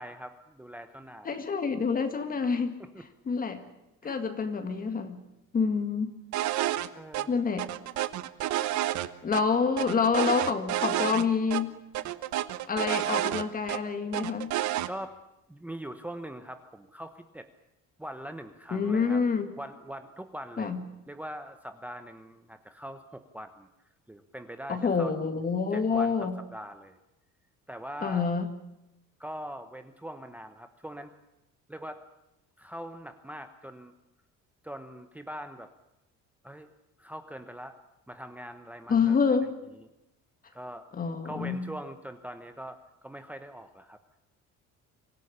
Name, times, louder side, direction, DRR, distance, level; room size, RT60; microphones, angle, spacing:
voice 1, 0.0-1.4 2.8-3.0 4.0-4.2 6.9-7.3 14.9-15.2 15.5-17.5 18.0-19.2 19.6-20.7 21.1-23.7 24.1-25.1 25.7-27.0 27.7-28.3 29.2-31.1 31.7-32.0 32.6-33.9 34.6-35.7 36.4-36.7 37.0-37.8 38.1-39.4 40.5-40.9 41.2-44.0, equal, 5° right, 8 dB, 1.0 m, -42 dB
voice 2, 1.3-2.7 3.3-3.6 4.0-5.2 5.5-6.2 7.3-7.7 9.2-11.8 12.7-14.6 18.7-19.5 20.6-20.8 24.7-26.4 28.0-28.5 38.9-39.5 40.9-41.7, left 5 dB, 30° left, 8 dB, 1.9 m, -27 dB
sound 1, 6.3-6.9 7.1-7.2 7.6-9.4 9.8-11.2 11.5-11.6 11.9-13.8 14.1-14.9, right 13 dB, 70° right, 1.3 m, -29 dB
24.5 x 16.0 x 10.0 m, 0.91 s
cardioid pair, 165°, 30 cm